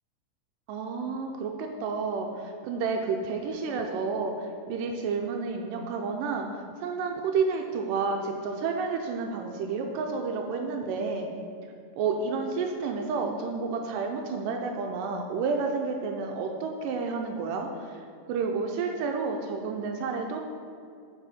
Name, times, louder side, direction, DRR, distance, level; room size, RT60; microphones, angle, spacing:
voice 1, 0.7-11.3 12.0-20.4, right 4 dB, 85° right, 3 dB, 2.1 m, -30 dB
7.0 x 5.4 x 4.2 m, 2.4 s
omnidirectional pair, 3.8 m